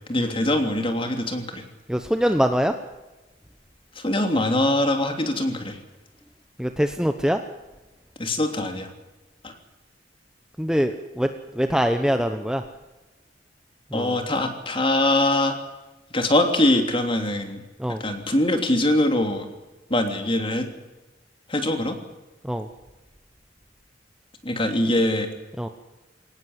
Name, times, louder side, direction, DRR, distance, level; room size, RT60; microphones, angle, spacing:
voice 1, 0.1-1.6 3.9-5.8 8.2-8.9 9.4-9.5 13.9-15.6 16.1-17.6 17.9-19.5 19.9-20.7 21.5-22.0 24.4-25.3, left 1 dB, 30° left, 5 dB, 3.1 m, -23 dB
voice 2, 1.9-2.7 6.6-7.4 10.6-11.3 11.5-12.6 13.9-14.2 17.8-18.0 22.4-22.7 25.6-25.7, equal, 5° right, 7 dB, 0.9 m, -23 dB
22.5 x 18.5 x 8.1 m, 1.1 s
head